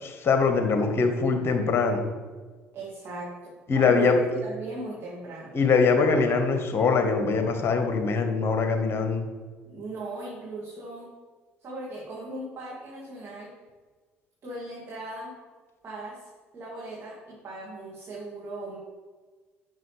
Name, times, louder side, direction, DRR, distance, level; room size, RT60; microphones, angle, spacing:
voice 1, 0.0-2.1 3.7-4.2 5.5-9.3, left 4 dB, 40° left, 5 dB, 1.5 m, -23 dB
voice 2, 2.7-5.6 9.6-11.1 11.6-13.5 14.4-15.3 15.8-18.8, right 2 dB, 40° right, -6 dB, 2.9 m, -38 dB
10.5 x 6.5 x 3.5 m, 1.4 s
figure-of-eight pair, 55°, 7 cm